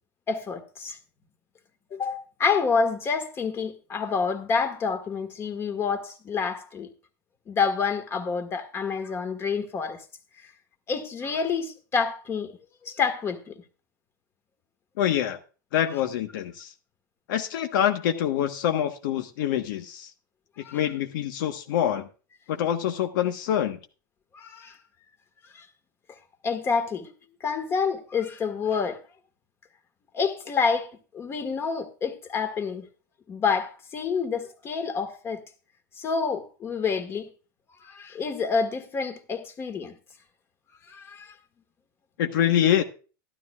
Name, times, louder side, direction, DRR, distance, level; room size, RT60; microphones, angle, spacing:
voice 1, 0.3-1.0 1.9-6.9 7.5-10.0 10.9-12.5 12.8-13.6 20.6-20.8 24.3-24.8 25.6-25.7 26.4-27.1 27.4-29.0 30.1-32.9 33.3-35.4 36.0-37.3 37.8-39.9 40.9-41.3, left 5 dB, 20° left, 1.6 m, -28 dB
voice 2, 15.0-15.4 15.7-16.7 17.3-20.1 20.7-22.1 22.5-23.8 42.2-42.8, left 10 dB, 70° left, 1.2 m, -25 dB
13.0 x 12.5 x 2.4 m
supercardioid pair, 150°, 11 cm